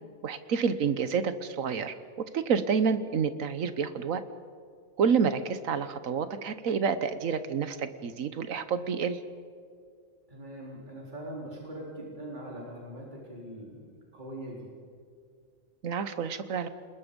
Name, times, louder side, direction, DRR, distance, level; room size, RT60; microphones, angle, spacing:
voice 1, 0.2-4.2 5.0-9.2 15.8-16.7, right 6 dB, 75° right, 12 dB, 1.5 m, -29 dB
voice 2, 10.3-14.7, right 1 dB, 35° right, -4 dB, 4.1 m, -42 dB
28.5 x 20.5 x 5.3 m, 2.2 s
omnidirectional pair, 1.4 m